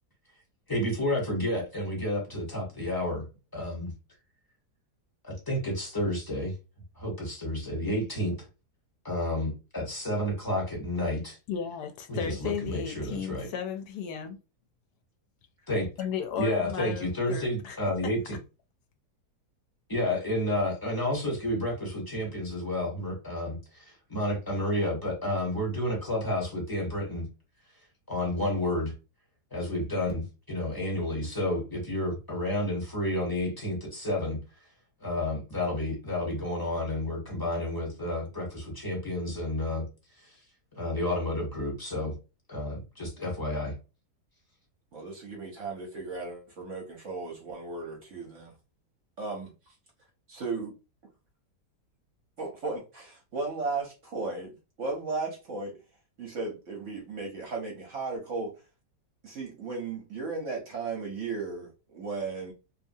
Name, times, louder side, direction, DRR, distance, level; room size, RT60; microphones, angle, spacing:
voice 1, 0.7-3.2 3.5-3.9 5.2-6.5 7.0-8.4 9.0-11.4 12.1-13.5 15.7-15.9 16.4-18.4 19.9-27.3 28.1-28.9 29.5-34.4 35.0-39.8 40.2-40.4 40.8-42.1 42.5-43.7, left 1 dB, 20° left, 0.6 m, -30 dB
voice 2, 11.5-14.4 16.0-17.8, left 7 dB, 75° left, 1.1 m, -34 dB
voice 3, 44.9-48.5 49.2-49.7 50.3-50.7 52.4-55.8 56.2-58.6 59.2-62.5, right 3 dB, 60° right, 0.8 m, -35 dB
2.7 x 2.4 x 2.6 m
omnidirectional pair, 1.8 m